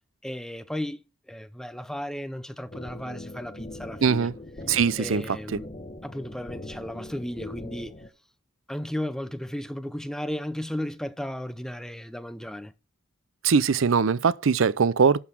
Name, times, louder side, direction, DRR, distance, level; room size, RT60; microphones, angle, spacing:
voice 1, 0.2-4.3 5.0-5.7 6.0-8.0 8.7-12.7, equal, 5° left, 0.5 m, -34 dB
sound 1, 2.7-8.1, left 1 dB, 30° left, 0.9 m, -41 dB
voice 2, 4.0-4.3 4.7-5.4 13.4-15.2, right 6 dB, 75° right, 0.5 m, -21 dB
12.0 x 4.0 x 7.4 m
head